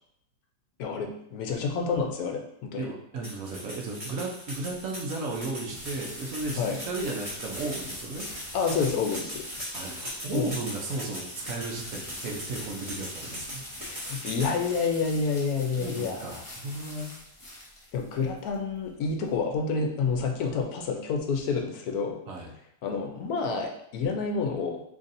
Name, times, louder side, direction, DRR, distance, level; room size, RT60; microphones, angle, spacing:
voice 1, 0.8-2.9 6.6-6.8 8.5-9.4 10.3-10.5 13.9-16.4 17.9-22.2 22.8-24.8, left 5 dB, 75° left, 3 dB, 1.0 m, -29 dB
voice 2, 2.8-8.3 9.7-13.6 15.8-17.1 22.3-22.5, right 2 dB, 65° right, 0 dB, 0.9 m, -35 dB
sound 1, 3.2-14.5, equal, 25° right, 0.9 m, -40 dB
sound 2, 5.6-19.4, left 1 dB, 25° left, 0.7 m, -44 dB
3.9 x 3.1 x 2.5 m, 0.75 s
omnidirectional pair, 1.7 m